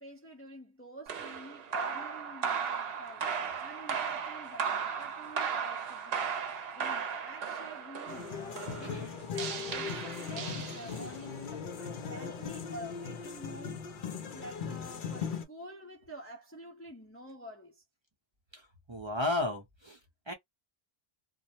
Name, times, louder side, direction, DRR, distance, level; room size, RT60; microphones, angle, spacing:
voice 1, 0.0-3.3 3.6-6.5 6.7-9.0 9.3-13.8 14.3-17.8, equal, 15° left, 0.5 m, -48 dB
sound 1, 1.1-11.2, right 6 dB, 70° right, 0.8 m, -36 dB
sound 2, 8.1-15.5, left 6 dB, 60° left, 0.7 m, -39 dB
voice 2, 8.8-9.1 18.5-20.0 20.3-20.4, left 2 dB, 30° right, 0.6 m, -34 dB
2.2 x 2.0 x 2.7 m
omnidirectional pair, 1.0 m